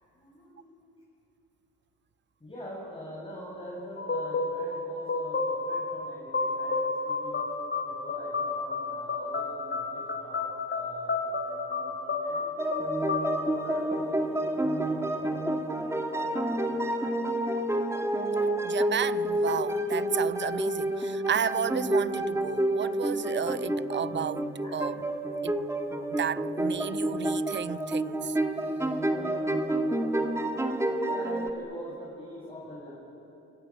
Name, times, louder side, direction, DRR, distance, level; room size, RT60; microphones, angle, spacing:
voice 1, 0.1-0.9 2.4-7.5 7.8-12.5 13.0-17.2 24.6-24.7 29.0-29.5 31.0-32.9, equal, 20° left, 7.9 m, -45 dB
sound 1, 4.0-14.6, left 3 dB, 35° left, 7.1 m, -32 dB
sound 2, 12.6-31.5, right 1 dB, 10° right, 2.3 m, -29 dB
voice 2, 18.6-24.5 24.7-24.9 25.4-25.5 26.2-28.3, right 8 dB, 40° right, 0.5 m, -32 dB
27.5 x 24.0 x 9.0 m
cardioid pair, 90°, 30 cm